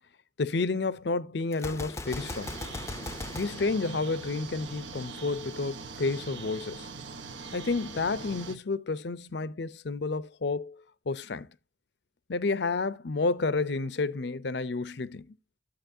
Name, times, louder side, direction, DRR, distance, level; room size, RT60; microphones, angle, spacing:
voice 1, 0.4-2.6 3.3-6.9 7.5-11.5 12.3-15.3, left 3 dB, 60° left, 0.6 m, -30 dB
Gunshot gunfire, 1.5-4.6, left 2 dB, 15° left, 0.5 m, -39 dB
sound 1, 2.0-8.6, right 4 dB, 80° right, 1.0 m, -42 dB
11.5 x 8.4 x 2.7 m
head